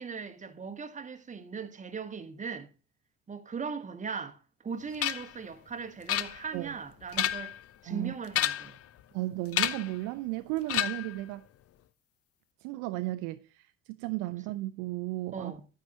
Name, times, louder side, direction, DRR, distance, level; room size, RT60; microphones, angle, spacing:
voice 1, 0.0-2.7 3.3-7.5 7.8-8.8 15.3-15.7, right 5 dB, 20° right, 1.1 m, -39 dB
sound 1, 5.0-5.4 6.1-6.7 7.0-7.6 8.3-8.8 9.5-10.0 10.7-11.2, left 12 dB, 40° left, 0.6 m, -30 dB
voice 2, 9.1-11.5 12.6-15.5, right 18 dB, 55° right, 0.6 m, -34 dB
9.3 x 8.6 x 2.8 m
figure-of-eight pair, 60°, 39 cm